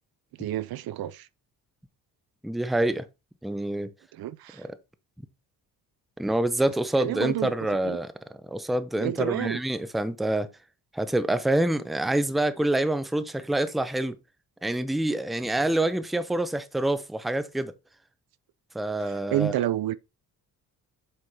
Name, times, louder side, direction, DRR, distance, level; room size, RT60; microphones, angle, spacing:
voice 1, 0.4-1.3 4.1-4.7 7.0-7.5 7.8-8.0 9.0-9.6 19.0-19.9, right 13 dB, 65° right, 0.5 m, -29 dB
voice 2, 2.4-3.0 3.4-3.9 4.6-4.7 6.2-8.1 8.4-10.5 10.9-14.2 14.6-17.7 18.7-19.5, right 1 dB, ahead, 0.5 m, -26 dB
7.8 x 5.4 x 2.8 m
cardioid pair, 110°, 39 cm